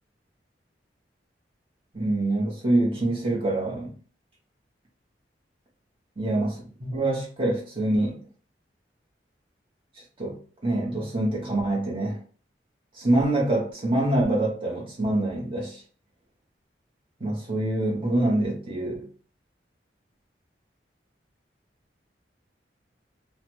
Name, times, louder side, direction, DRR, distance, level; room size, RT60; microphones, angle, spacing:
voice 1, 1.9-3.9 6.2-8.2 10.2-12.2 12.9-15.8 17.2-19.1, right 1 dB, 30° right, 0.9 m, -25 dB
3.2 x 2.1 x 3.0 m
head